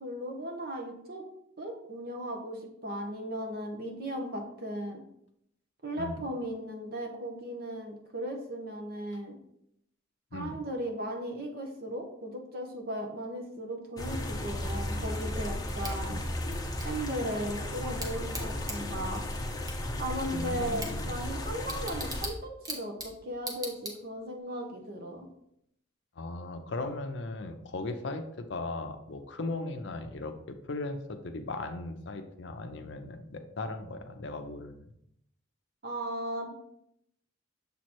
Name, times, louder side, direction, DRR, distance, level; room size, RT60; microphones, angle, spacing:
voice 1, 0.0-1.3 1.6-5.0 5.8-9.4 10.3-16.2 16.8-19.2 20.0-25.3 35.8-36.5, right 1 dB, 45° right, 2 dB, 1.0 m, -37 dB
sound 1, 14.0-22.3, left 1 dB, 20° left, 0.7 m, -35 dB
Bicycle / Tick, 15.8-24.4, right 1 dB, 15° right, 0.8 m, -43 dB
voice 2, 20.3-21.0 26.2-34.8, left 2 dB, 60° left, 7 dB, 0.6 m, -37 dB
6.9 x 3.1 x 4.3 m, 0.74 s
head